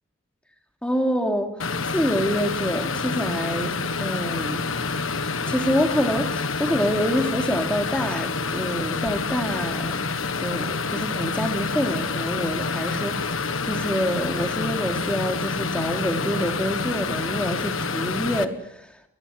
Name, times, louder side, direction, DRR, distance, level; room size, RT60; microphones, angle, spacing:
voice 1, 0.8-1.5 1.9-4.8 5.5-10.1 10.4-19.0, equal, 5° left, 3 dB, 3.1 m, -26 dB
sound 1, 1.6-18.4, left 4 dB, 70° left, 1.5 m, -28 dB
30.0 x 23.0 x 6.2 m, 0.81 s
head